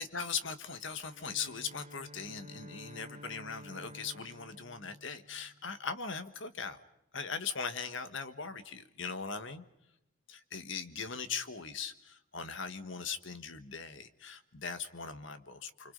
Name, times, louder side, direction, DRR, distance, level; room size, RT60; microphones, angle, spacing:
voice 1, 0.0-6.8 7.1-9.6 10.3-15.9, left 5 dB, 60° left, 10 dB, 1.5 m, -40 dB
Bowed string instrument, 1.0-5.8, equal, 30° right, 1.9 m, -52 dB
29.5 x 25.5 x 5.4 m, 0.86 s
head